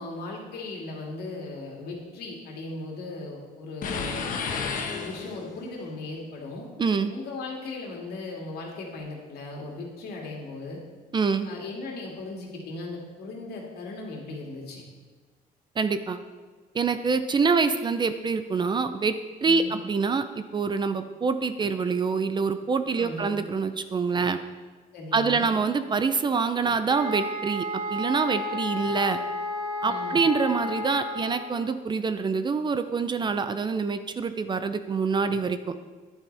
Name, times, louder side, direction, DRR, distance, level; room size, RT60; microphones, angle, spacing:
voice 1, 0.0-4.2 4.9-6.7 7.1-10.8 11.4-14.8 19.4-19.7 22.9-23.4 24.9-25.5 29.8-30.2, left 2 dB, 70° left, -1 dB, 2.3 m, -37 dB
sound 1, 3.8-5.6, left 5 dB, 55° left, 1.2 m, -31 dB
voice 2, 6.8-7.1 11.1-11.5 15.8-16.2 16.7-19.1 19.4-24.4 25.1-29.2 29.8-35.7, right 5 dB, 25° right, 10 dB, 0.5 m, -26 dB
sound 2, 26.9-31.6, left 1 dB, 65° right, 1.9 m, -32 dB
10.0 x 9.0 x 3.4 m, 1.4 s
cardioid pair, 110°, 17 cm